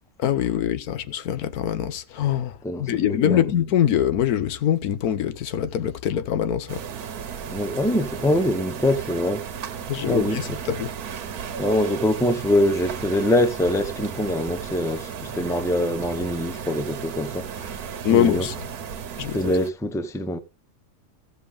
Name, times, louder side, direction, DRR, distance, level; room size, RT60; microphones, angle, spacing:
voice 1, 0.2-6.8 9.9-10.9 18.0-18.6 19.2-19.5, left 10 dB, 85° left, 1.3 m, -24 dB
voice 2, 2.6-3.5 7.5-9.4 10.1-10.6 11.6-17.8 18.1-18.5 19.3-20.4, left 1 dB, 5° left, 0.6 m, -24 dB
sound 1, 6.7-19.7, right 7 dB, 85° right, 1.5 m, -34 dB
14.5 x 6.9 x 3.6 m
omnidirectional pair, 1.5 m